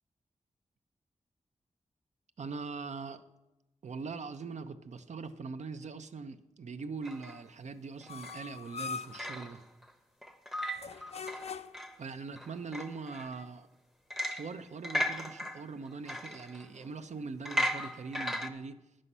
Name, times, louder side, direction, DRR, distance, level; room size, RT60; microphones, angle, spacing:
voice 1, 2.4-3.2 3.8-9.6 12.0-13.7 14.3-18.8, right 4 dB, 65° right, 9 dB, 0.7 m, -42 dB
sound 1, 7.0-7.4 8.0-8.4 8.8-9.8 10.2-12.0 12.4-13.4 14.1-14.6 14.8-17.0 17.5-18.5, equal, 5° right, 0.7 m, -36 dB
sound 2, 8.1-9.3 10.7-11.9, left 5 dB, 55° left, 0.5 m, -41 dB
9.9 x 7.6 x 5.5 m, 0.97 s
wide cardioid pair, 90°, 13 cm